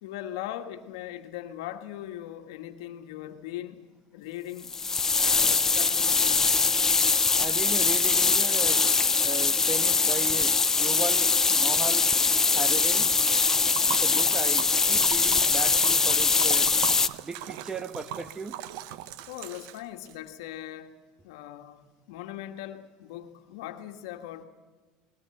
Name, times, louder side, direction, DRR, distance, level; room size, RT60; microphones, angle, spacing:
voice 1, 0.0-4.8 5.2-6.7 19.3-20.9 21.2-24.5, left 12 dB, 80° left, 1.6 m, -40 dB
sound 1, 4.6-17.1, left 4 dB, 20° left, 0.7 m, -23 dB
voice 2, 7.4-8.8 9.2-12.1 12.5-13.1 13.9-16.7 17.2-18.6, right 4 dB, 20° right, 1.2 m, -36 dB
Liquid, 13.0-20.2, right 12 dB, 75° right, 0.9 m, -40 dB
20.0 x 19.5 x 7.8 m
supercardioid pair, 105°, 3 cm